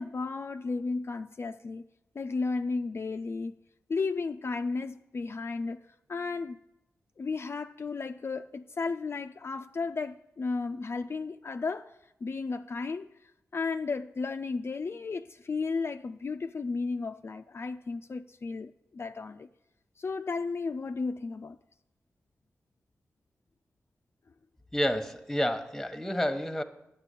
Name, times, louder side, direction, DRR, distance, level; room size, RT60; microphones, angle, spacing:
voice 1, 0.0-1.8 2.2-3.5 3.9-5.8 6.1-6.6 7.2-12.0 12.2-19.5 20.0-21.6, left 4 dB, 45° left, 0.4 m, -34 dB
voice 2, 24.7-26.6, equal, 5° left, 1.1 m, -29 dB
9.7 x 5.8 x 8.3 m
cardioid pair, 45°, 6 cm